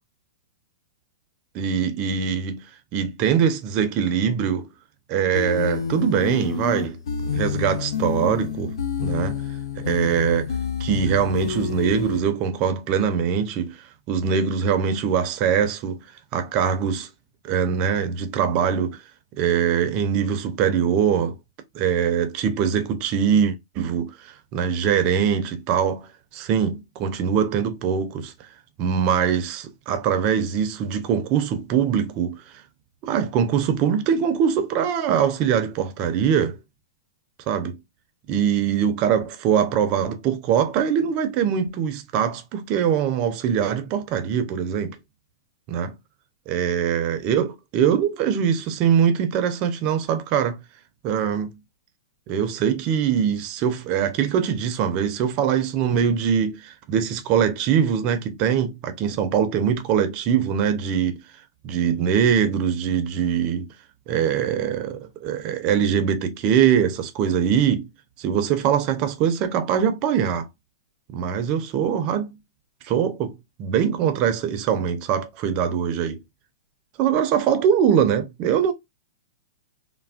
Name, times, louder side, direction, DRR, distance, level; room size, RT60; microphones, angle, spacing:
voice 1, 1.5-2.7 2.9-4.7 5.1-7.0 7.2-8.7 9.0-9.4 9.8-10.5 10.8-13.8 14.1-16.0 16.3-17.1 17.4-19.0 19.4-21.3 21.7-28.3 28.8-32.4 33.0-36.6 37.5-37.8 38.3-45.0 45.7-45.9 46.5-50.6 51.0-51.6 52.3-61.2 61.6-63.7 64.1-67.9 68.2-70.5 71.1-72.3 72.8-76.2 77.0-78.7, right 8 dB, 35° right, 0.5 m, -22 dB
sound 1, 5.3-12.2, left 6 dB, 75° left, 0.6 m, -28 dB
3.3 x 2.0 x 2.3 m
hypercardioid pair, 145°, 3 cm